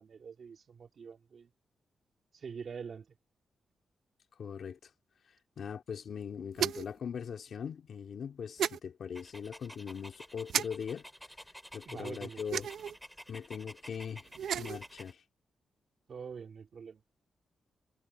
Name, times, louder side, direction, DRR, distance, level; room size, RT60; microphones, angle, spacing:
voice 1, 0.0-1.5 2.3-3.2 11.8-12.7 16.1-17.0, right 6 dB, 45° right, 2.8 m, -45 dB
voice 2, 4.4-4.8 5.6-11.1 11.7-12.7 13.3-14.3 14.6-15.2, left 7 dB, 55° left, 2.7 m, -40 dB
sound 1, 6.6-7.0 8.6-8.8 10.5-10.7 12.5-13.0 14.3-14.8, right 9 dB, 80° right, 0.7 m, -32 dB
Dog, 9.1-15.1, equal, ahead, 3.3 m, -51 dB
wide cardioid pair, 155°, 0 cm